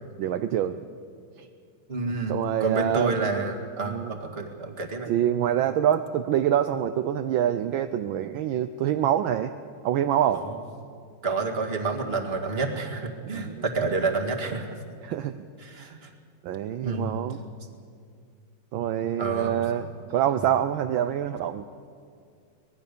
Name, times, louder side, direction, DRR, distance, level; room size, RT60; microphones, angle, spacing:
voice 1, 0.2-0.8 1.4-1.5 2.3-3.2 3.8-4.1 5.1-9.5 9.8-10.5 13.3-13.6 15.0-15.4 15.8-15.9 16.4-17.4 18.7-21.6, right 10 dB, 70° right, 9 dB, 1.4 m, -26 dB
voice 2, 1.9-5.1 10.5-10.6 11.2-14.8 15.6-16.1 16.8-17.1 19.2-19.6, right 3 dB, 30° right, 3 dB, 2.1 m, -29 dB
25.0 x 19.5 x 6.8 m, 2.3 s
omnidirectional pair, 2.4 m